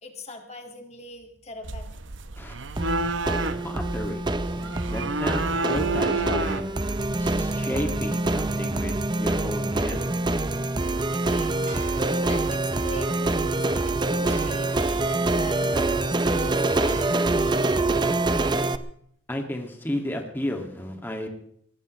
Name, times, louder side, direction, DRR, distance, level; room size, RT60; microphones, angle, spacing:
voice 1, 0.0-1.9 11.1-11.7 12.3-18.2, left 2 dB, 35° left, 4 dB, 2.1 m, -42 dB
sound 1, 1.6-7.6, right 3 dB, 75° right, 0.9 m, -31 dB
sound 2, 2.8-18.8, right 2 dB, 25° right, 0.7 m, -25 dB
voice 2, 3.6-4.2 4.5-6.7 7.2-10.1 11.2-11.5 14.7-14.8 15.6-16.0 19.3-21.3, left 1 dB, 10° left, 2 dB, 2.1 m, -33 dB
sound 3, 11.7-17.4, right 2 dB, 45° right, 3.9 m, -45 dB
23.5 x 18.5 x 3.2 m, 0.68 s
head